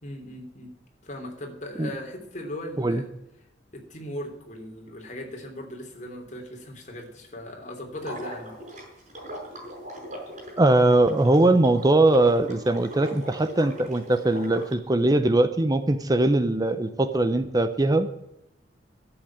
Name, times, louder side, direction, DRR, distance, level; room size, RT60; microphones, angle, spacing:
voice 1, 0.0-0.7 1.0-3.1 3.7-8.6, left 1 dB, 45° left, 3 dB, 3.2 m, -38 dB
Water / Liquid, 8.0-14.7, equal, 40° right, 5.5 m, -40 dB
voice 2, 10.6-18.2, right 2 dB, 20° right, 10 dB, 0.7 m, -21 dB
12.5 x 8.0 x 8.8 m, 0.87 s
head